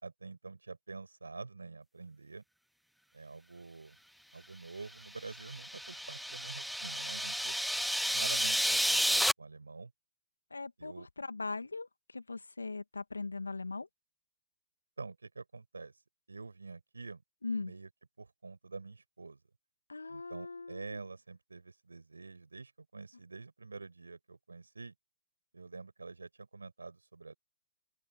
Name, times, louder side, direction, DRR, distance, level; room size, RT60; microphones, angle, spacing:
voice 1, 0.0-2.4 3.1-4.0 4.3-7.6 8.1-9.9 10.8-11.1 15.0-15.9 16.3-17.2 17.6-17.9 18.2-19.4 20.1-24.9 25.5-27.3, right 3 dB, 80° right, 6.0 m, -47 dB
sound 1, 5.2-9.3, equal, ahead, 0.5 m, -31 dB
voice 2, 10.5-13.9 17.4-17.7 19.9-21.0, left 3 dB, 85° left, 2.3 m, -40 dB
open air
figure-of-eight pair, 120°, 0 cm